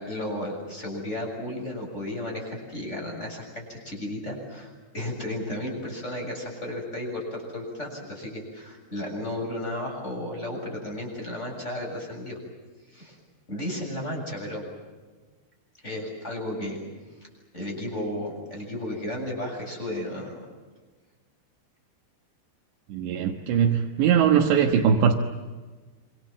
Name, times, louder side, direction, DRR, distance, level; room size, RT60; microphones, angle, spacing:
voice 1, 0.0-12.4 12.9-13.2 13.5-14.7 15.8-16.8 17.5-20.4, left 1 dB, 15° left, 0 dB, 7.6 m, -33 dB
voice 2, 22.9-25.1, right 7 dB, 85° right, 1 dB, 3.7 m, -21 dB
27.0 x 26.0 x 7.5 m, 1.3 s
omnidirectional pair, 5.0 m